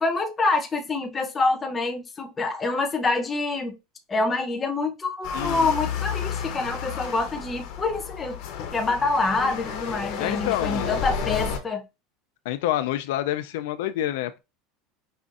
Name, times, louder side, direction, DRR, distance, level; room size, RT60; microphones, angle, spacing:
voice 1, 0.0-3.8 4.1-8.4 8.7-11.8, left 3 dB, 20° left, 0.7 m, -26 dB
sound 1, 5.2-11.6, left 7 dB, 60° left, 0.7 m, -31 dB
voice 2, 5.3-5.7 10.2-11.0 12.5-14.4, left 13 dB, 80° left, 0.3 m, -27 dB
5.2 x 2.4 x 2.4 m
supercardioid pair, 135°, 0 cm